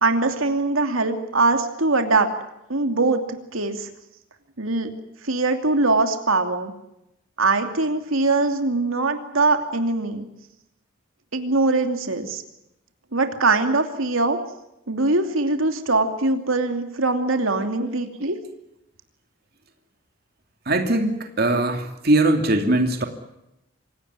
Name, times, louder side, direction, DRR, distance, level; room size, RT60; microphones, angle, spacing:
voice 1, 0.0-2.3 2.7-3.3 3.5-3.9 4.6-4.9 5.2-6.7 7.4-10.3 11.3-12.4 13.1-14.4 14.9-18.4, right 3 dB, 80° right, 6 dB, 2.7 m, -22 dB
voice 2, 20.7-23.0, right 2 dB, 50° right, 5 dB, 2.8 m, -20 dB
26.0 x 17.5 x 9.6 m, 0.85 s
head